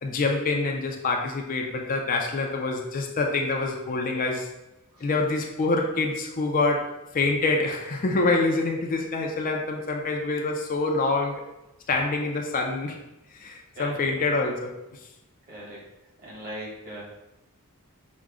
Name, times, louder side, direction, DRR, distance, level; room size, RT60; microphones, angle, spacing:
voice 1, 0.0-4.5 5.0-6.9 7.1-11.4 11.9-13.0 13.3-14.7, left 3 dB, 40° left, 2 dB, 0.4 m, -26 dB
voice 2, 13.7-14.4 15.4-15.8 16.2-17.0, equal, 40° right, -5 dB, 1.6 m, -40 dB
6.0 x 2.2 x 3.6 m, 0.94 s
head